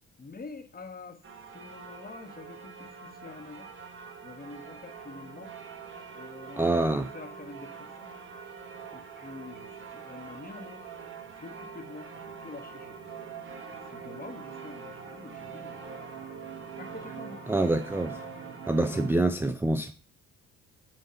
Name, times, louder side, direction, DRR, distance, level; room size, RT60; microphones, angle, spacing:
voice 1, 0.2-1.2 1.5-3.7 4.2-5.5 6.1-8.1 8.9-10.8 11.4-13.1 13.7-16.0 16.8-17.5 19.6-19.8, left 3 dB, 30° left, 1.4 m, -46 dB
sound 1, 1.2-19.2, right 6 dB, 40° right, 1.5 m, -44 dB
voice 2, 6.6-7.1 17.5-18.2 18.7-19.9, right 2 dB, 5° right, 0.4 m, -26 dB
7.7 x 3.4 x 5.7 m
cardioid pair, 90°, 30 cm